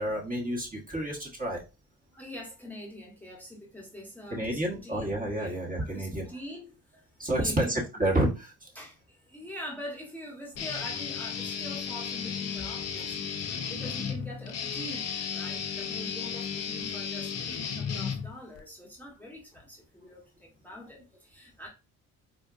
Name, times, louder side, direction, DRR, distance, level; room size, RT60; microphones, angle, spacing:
voice 1, 0.0-1.6 4.3-6.3 7.2-8.7, right 1 dB, 20° right, 1.3 m, -29 dB
voice 2, 2.1-5.0 5.4-5.5 5.8-7.0 7.3-7.7 8.7-17.3 17.8-21.7, equal, 5° left, 1.1 m, -44 dB
Guitar, 10.6-18.6, left 7 dB, 40° left, 0.7 m, -34 dB
4.3 x 2.2 x 2.5 m
supercardioid pair, 70°, 40 cm